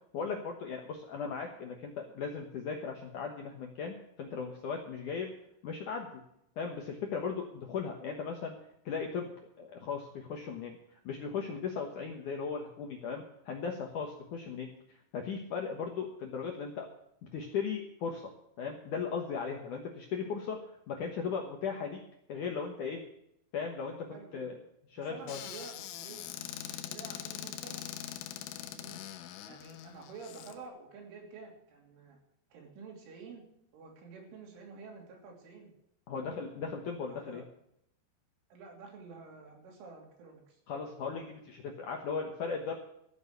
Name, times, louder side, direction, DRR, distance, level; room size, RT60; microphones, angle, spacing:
voice 1, 0.1-5.3 5.6-6.2 6.6-8.6 8.9-9.3 9.6-16.9 17.2-18.3 18.6-20.6 20.9-22.0 22.3-23.0 23.5-24.6 24.9-25.4 36.1-37.4 40.7-42.7, left 5 dB, 70° left, 2 dB, 1.9 m, -37 dB
voice 2, 24.1-24.5 25.0-26.2 26.7-27.9 28.6-29.0 29.4-32.2 32.5-33.4 33.7-35.7 36.1-36.4 37.1-37.5 38.5-40.6, right 4 dB, 85° right, 1 dB, 5.5 m, -50 dB
Squeak / Cupboard open or close, 25.3-30.6, left 11 dB, 85° left, 3.3 m, -43 dB
14.0 x 7.3 x 8.2 m, 0.75 s
omnidirectional pair, 5.5 m